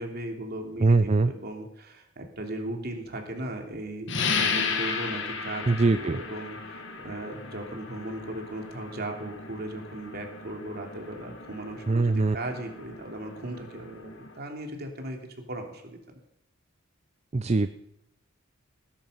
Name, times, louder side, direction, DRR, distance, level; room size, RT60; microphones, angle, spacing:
voice 1, 0.0-15.2 15.5-16.0, right 1 dB, 50° right, 3 dB, 3.0 m, -37 dB
voice 2, 0.8-1.3 5.7-6.2 11.9-12.4 17.3-17.7, right 3 dB, 30° right, 12 dB, 0.5 m, -22 dB
sound 1, 4.1-14.4, left 5 dB, 60° left, 2.0 m, -35 dB
19.5 x 10.5 x 5.6 m, 0.83 s
head